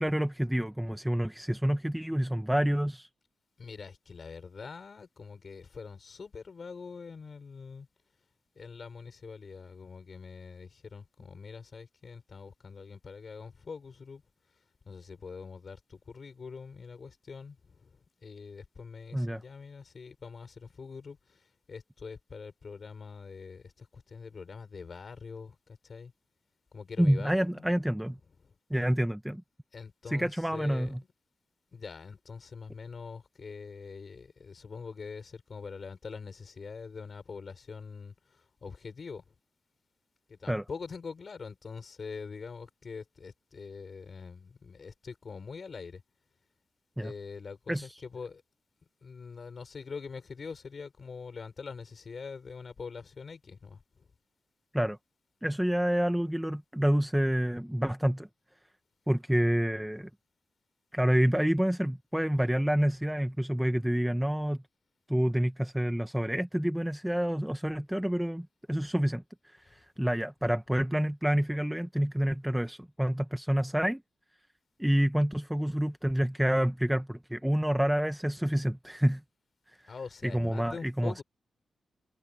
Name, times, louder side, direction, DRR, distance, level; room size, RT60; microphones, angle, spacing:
voice 1, 0.0-3.1 19.1-19.4 27.0-28.2 28.7-29.4 30.1-31.0 40.5-40.6 47.0-47.1 47.7-48.0 54.7-55.0 55.4-58.3 59.1-60.1 60.9-64.6 65.1-74.0 74.8-79.2 79.7-79.8 80.2-81.2, equal, 5° right, 0.7 m, -28 dB
voice 2, 3.6-7.9 8.6-14.2 14.8-26.1 26.7-27.7 28.4-28.5 29.7-30.9 31.7-39.3 40.3-46.0 47.0-48.4 49.0-54.1 69.7-69.8 79.9-81.2, left 5 dB, 40° left, 5.5 m, -44 dB
wide cardioid pair, 175°, 0 cm